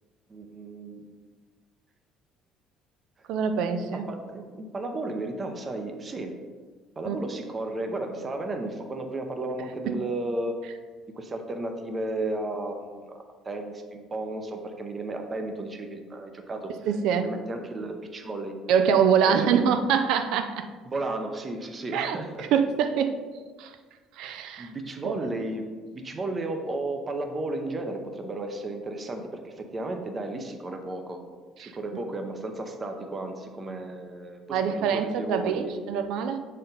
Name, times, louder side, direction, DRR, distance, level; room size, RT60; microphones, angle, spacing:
voice 1, 0.3-1.0 3.2-3.3 3.9-6.3 7.0-10.5 11.2-16.7 17.1-18.5 19.3-19.7 20.9-22.5 24.6-25.7 25.9-31.2 31.6-34.6 34.9-35.7, right 2 dB, 25° right, 4 dB, 0.7 m, -33 dB
voice 2, 3.3-4.0 7.1-7.2 9.9-10.0 16.9-17.2 18.7-20.7 21.9-22.2 22.5-23.2 23.6-23.8 24.2-24.7 25.0-25.2 31.6-32.1 34.5-36.4, right 7 dB, 75° right, 8 dB, 0.4 m, -25 dB
7.6 x 4.2 x 4.0 m, 1.4 s
cardioid pair, 140°, 0 cm